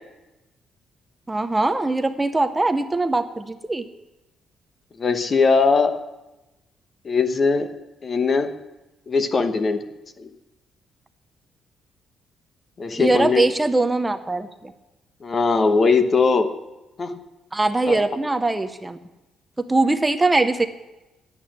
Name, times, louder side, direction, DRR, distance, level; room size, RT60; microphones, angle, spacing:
voice 1, 1.3-3.8 13.0-14.7 17.5-19.0 19.7-20.7, right 2 dB, 15° right, 8 dB, 0.7 m, -21 dB
voice 2, 5.0-6.0 7.0-7.7 8.0-8.5 9.1-9.8 10.2-10.3 12.8-13.5 15.2-16.5 17.0-17.2 17.9-18.0, left 4 dB, 40° left, 8 dB, 1.0 m, -20 dB
10.5 x 8.4 x 7.5 m, 1.0 s
cardioid pair, 90°, 0 cm